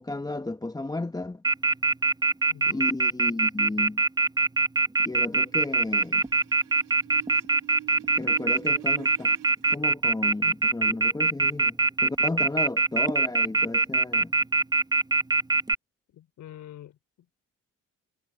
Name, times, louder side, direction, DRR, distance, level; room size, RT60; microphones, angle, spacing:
voice 1, 0.0-1.4 2.7-4.0 5.0-6.3 8.2-9.4 9.7-11.8 12.0-14.3, left 2 dB, 15° left, 1.1 m, -33 dB
Telephone, 1.4-15.7, right 3 dB, 15° right, 1.0 m, -22 dB
voice 2, 2.5-2.8 16.1-17.3, left 12 dB, 75° left, 5.5 m, -46 dB
sound 1, 5.1-9.8 11.4-11.7, right 15 dB, 90° right, 4.2 m, -47 dB
cardioid pair, 90°, 30 cm